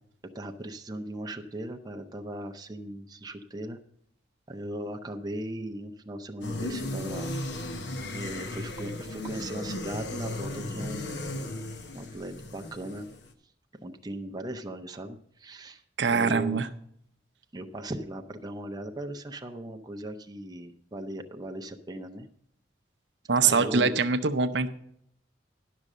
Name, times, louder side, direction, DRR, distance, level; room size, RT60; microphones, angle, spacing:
voice 1, 0.3-3.8 4.5-7.4 8.1-11.2 11.9-13.1 13.8-16.6 17.5-22.3 23.4-24.0, right 1 dB, 20° right, 4 dB, 0.6 m, -38 dB
sound 1, 6.4-13.3, left 1 dB, 65° left, 0.9 m, -36 dB
voice 2, 16.0-16.7 23.3-24.7, right 5 dB, 70° right, 8 dB, 0.6 m, -23 dB
11.0 x 6.2 x 6.5 m, 0.71 s
head